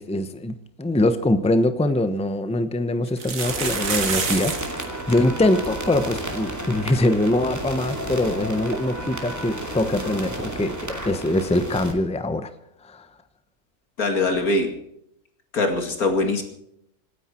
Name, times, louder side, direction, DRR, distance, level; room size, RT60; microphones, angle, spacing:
voice 1, 0.0-12.5 12.8-13.1, left 1 dB, 5° left, 10 dB, 0.8 m, -23 dB
sound 1, 1.5-1.6 1.9-2.0 3.1-4.8 5.1-5.2 5.4-5.7 6.2-6.3 6.6-6.7 8.7-8.8, right 5 dB, 65° right, 2.0 m, -28 dB
sound 2, 3.4-11.9, right 1 dB, 10° right, 2.5 m, -32 dB
voice 2, 14.0-14.8 15.5-16.4, left 2 dB, 85° left, 5 dB, 2.8 m, -22 dB
26.5 x 10.0 x 4.5 m, 0.75 s
omnidirectional pair, 1.5 m